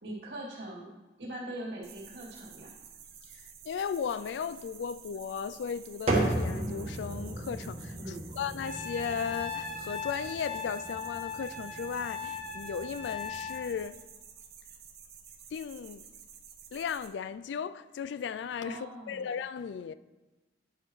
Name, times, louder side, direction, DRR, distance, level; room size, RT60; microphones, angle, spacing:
voice 1, 0.0-0.9 1.2-2.7 8.0-8.3 18.6-19.2, right 1 dB, 80° right, 2.3 m, -41 dB
sound 1, 1.8-17.1, right 7 dB, 60° right, 0.8 m, -51 dB
voice 2, 3.6-14.0 15.5-16.1 16.7-19.9, left 7 dB, 80° left, 0.3 m, -36 dB
sound 2, 6.1-13.8, right 1 dB, 35° right, 1.3 m, -36 dB
Trumpet, 8.6-13.7, left 4 dB, 30° left, 0.7 m, -39 dB
10.0 x 5.6 x 3.2 m
head